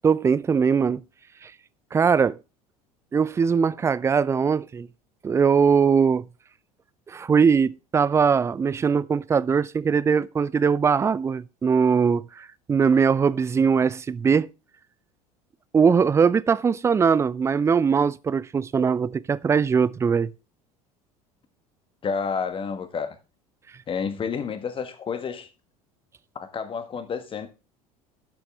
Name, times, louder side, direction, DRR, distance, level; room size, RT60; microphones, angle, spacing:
voice 1, 0.0-1.0 1.4-1.5 1.9-2.4 3.1-4.9 5.2-6.3 7.1-14.5 15.7-20.3, right 6 dB, 15° right, 0.4 m, -21 dB
voice 2, 22.0-23.1 23.9-25.5 26.3-27.5, left 6 dB, 25° left, 1.4 m, -30 dB
11.5 x 7.0 x 3.3 m
figure-of-eight pair, 70°, 19 cm